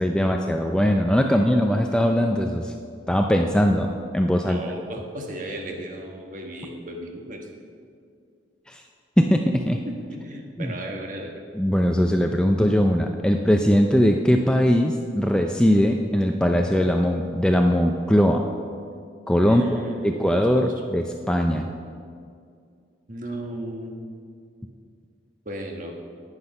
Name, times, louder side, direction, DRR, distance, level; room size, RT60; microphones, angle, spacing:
voice 1, 0.0-2.7 3.1-4.6 8.7-8.8 9.2-9.8 10.6-10.7 11.5-18.4 19.3-19.6 20.0-21.7, equal, 5° left, 3 dB, 0.4 m, -20 dB
voice 2, 1.3-1.6 4.2-7.5 9.9-11.4 19.5-20.7 23.1-23.9 25.4-25.9, right 1 dB, 40° right, 2 dB, 1.3 m, -35 dB
9.8 x 9.5 x 5.5 m, 2.3 s
head